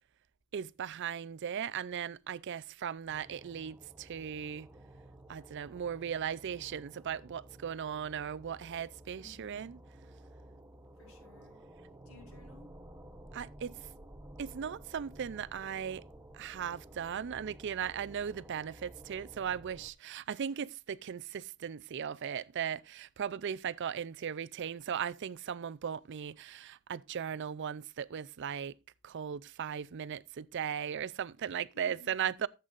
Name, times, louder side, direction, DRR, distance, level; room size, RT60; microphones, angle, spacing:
voice 1, 0.5-4.7 5.3-9.8 13.3-13.9 14.4-16.0 16.3-28.8 29.0-32.5, right 8 dB, 55° right, 0.4 m, -37 dB
sound 1, 3.1-19.9, right 1 dB, 15° right, 0.8 m, -53 dB
voice 2, 9.1-9.7 11.0-11.6 12.1-12.7 31.7-32.4, left 4 dB, 70° left, 5.5 m, -58 dB
14.5 x 8.1 x 2.5 m
head